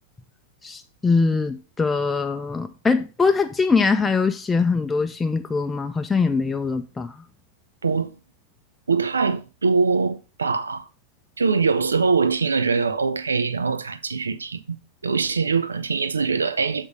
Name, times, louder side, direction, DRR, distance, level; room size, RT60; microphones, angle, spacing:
voice 1, 0.6-7.1, left 4 dB, 10° left, 0.5 m, -22 dB
voice 2, 7.8-8.1 8.9-10.9 11.4-14.8 15.0-16.9, right 4 dB, 75° right, 0.5 m, -23 dB
7.8 x 3.6 x 5.1 m
figure-of-eight pair, 90°, 0 cm